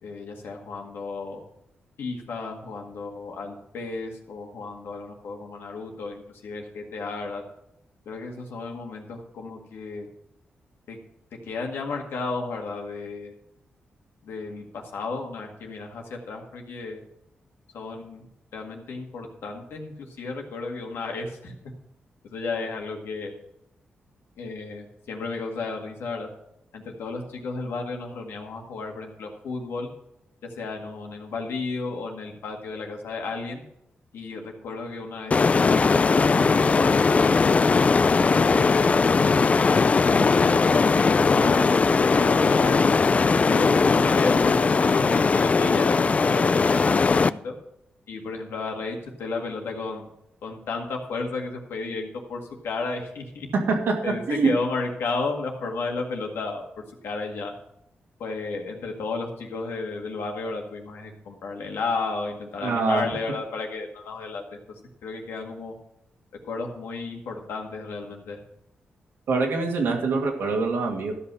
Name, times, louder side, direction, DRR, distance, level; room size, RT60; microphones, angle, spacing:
voice 1, 0.0-1.4 2.0-7.4 8.1-10.1 10.9-11.0 11.4-13.3 14.2-17.0 17.7-18.3 18.5-21.5 22.2-23.3 24.4-26.3 26.7-29.9 30.6-33.6 34.1-35.4 35.7-37.6 38.3-38.9 39.2-41.7 42.0-42.9 43.4-47.5 48.1-50.1 50.4-53.5 54.0-56.6 57.0-57.5 58.2-64.4 65.0-65.7 66.4-68.4, left 3 dB, 85° left, 2 dB, 1.9 m, -33 dB
sound 1, 35.3-47.3, left 4 dB, 35° left, 0.3 m, -19 dB
voice 2, 62.6-63.0 69.3-71.1, right 4 dB, 85° right, 0 dB, 2.4 m, -24 dB
13.0 x 5.7 x 6.3 m, 0.81 s
cardioid pair, 80°, 4 cm